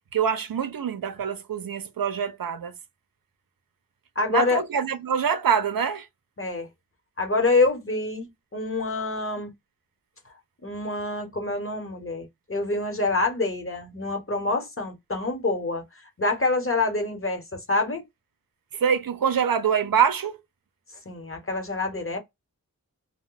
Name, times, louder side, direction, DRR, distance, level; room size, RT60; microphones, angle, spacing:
voice 1, 0.1-2.7 4.3-6.1 18.7-20.4, right 7 dB, 80° right, 0.5 m, -25 dB
voice 2, 4.2-4.6 6.4-6.7 7.2-9.5 10.6-15.8 16.2-18.0 21.0-22.2, left 3 dB, 40° left, 1.0 m, -26 dB
2.2 x 2.1 x 3.8 m
wide cardioid pair, 60°, 35 cm